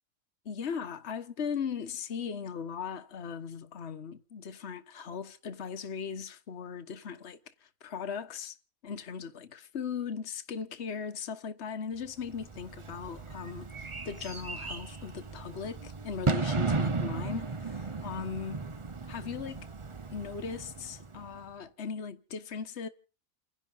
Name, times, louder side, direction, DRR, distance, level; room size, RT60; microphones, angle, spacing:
voice 1, 0.4-8.6 8.8-18.7 19.1-19.7 20.1-22.9, left 6 dB, 50° left, 1.5 m, -38 dB
Bird / Fireworks, 12.2-21.4, right 4 dB, 30° right, 0.7 m, -35 dB
29.5 x 11.0 x 4.0 m
omnidirectional pair, 1.5 m